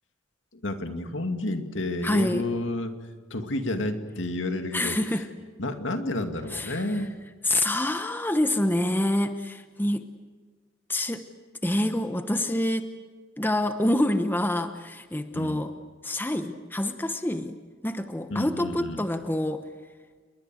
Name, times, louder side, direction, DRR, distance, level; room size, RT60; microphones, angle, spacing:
voice 1, 0.5-2.9 3.3-5.0 5.6-7.1 15.3-15.6 18.3-19.0, left 1 dB, 70° left, 6 dB, 2.4 m, -30 dB
voice 2, 2.0-2.5 4.7-5.3 6.5-7.0 7.4-10.1 10.9-11.2 11.6-12.9 13.4-15.7 16.0-17.6 17.8-19.7, left 1 dB, 10° left, 8 dB, 1.0 m, -27 dB
29.0 x 22.5 x 7.8 m, 1.5 s
head